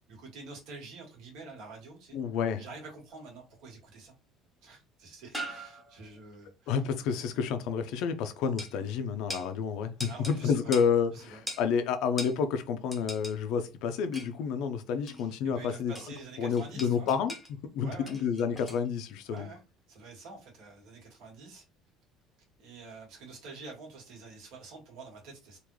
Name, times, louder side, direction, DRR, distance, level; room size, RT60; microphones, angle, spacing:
voice 1, 0.1-2.2 2.6-4.1 4.6-6.8 10.1-10.7 11.1-11.4 15.1-17.1 17.8-18.3 19.3-19.6 19.9-21.6 22.6-25.6, right 3 dB, 65° right, 1.8 m, -47 dB
voice 2, 2.1-2.6 6.7-15.9 16.4-17.3 17.7-19.5, left 6 dB, 65° left, 0.6 m, -29 dB
sound 1, 3.1-3.6 4.7-4.8 5.3-6.2 8.6-8.7 9.3-9.5 10.0-10.4 10.7-10.9 11.5-11.7 12.2-12.4 12.9-13.4 14.1-14.4 15.1-15.3 15.9-16.3 16.5-17.5 18.1-18.9 19.3-19.4, equal, ahead, 0.9 m, -41 dB
3.7 x 2.5 x 3.1 m
cardioid pair, 160°, 0 cm